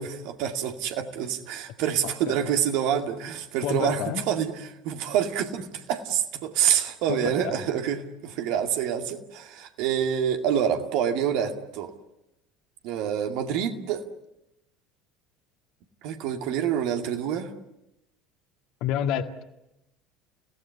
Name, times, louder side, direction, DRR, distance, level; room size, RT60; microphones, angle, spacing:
voice 1, 0.0-4.5 4.8-11.9 12.8-14.1 16.0-17.5, right 9 dB, 60° right, 5 dB, 2.3 m, -27 dB
voice 2, 2.0-2.4 3.6-4.2 7.1-7.5 18.8-19.4, left 9 dB, 55° left, 7 dB, 2.0 m, -29 dB
30.0 x 17.5 x 9.7 m, 0.90 s
figure-of-eight pair, 65°, 0 cm